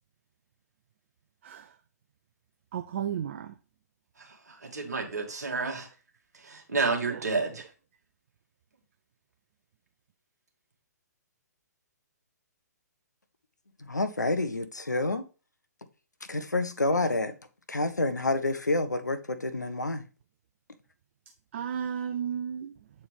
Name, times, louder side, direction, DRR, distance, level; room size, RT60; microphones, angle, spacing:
voice 1, 2.7-3.5 7.1-7.2 21.5-22.7, right 8 dB, 40° right, 0.4 m, -33 dB
voice 2, 4.6-5.9 6.4-7.6, right 4 dB, 65° right, 1.8 m, -30 dB
voice 3, 13.8-15.2 16.3-17.3 17.7-20.0, left 2 dB, 80° left, 0.7 m, -28 dB
7.5 x 4.2 x 3.4 m
figure-of-eight pair, 125°, 9 cm